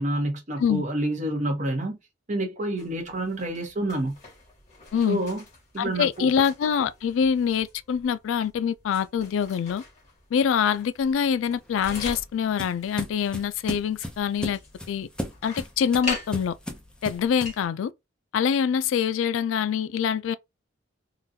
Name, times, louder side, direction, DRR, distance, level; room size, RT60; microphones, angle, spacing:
voice 1, 0.0-2.0 2.3-4.1 5.1-5.4 5.7-6.3, right 1 dB, 40° right, 0.9 m, -28 dB
sound 1, 2.8-17.6, left 3 dB, 35° left, 1.9 m, -43 dB
voice 2, 5.8-9.8 10.3-14.6 14.9-15.1 15.4-16.5 17.0-17.9 18.3-20.3, left 7 dB, 75° left, 0.3 m, -25 dB
sound 2, 11.6-17.7, equal, 5° left, 0.6 m, -36 dB
3.8 x 2.3 x 2.7 m
head